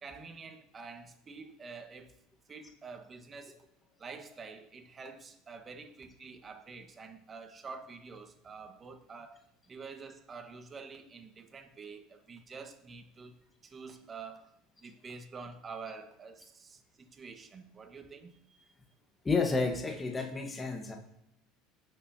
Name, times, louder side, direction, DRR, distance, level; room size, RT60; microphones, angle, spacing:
voice 1, 0.0-2.1 2.5-3.6 4.0-9.4 9.7-13.3 13.6-14.5 14.8-18.6, right 4 dB, 30° right, 1.5 m, -47 dB
voice 2, 19.2-21.0, left 3 dB, 20° left, 1.5 m, -30 dB
17.5 x 7.1 x 2.9 m
hypercardioid pair, 80°, 0 cm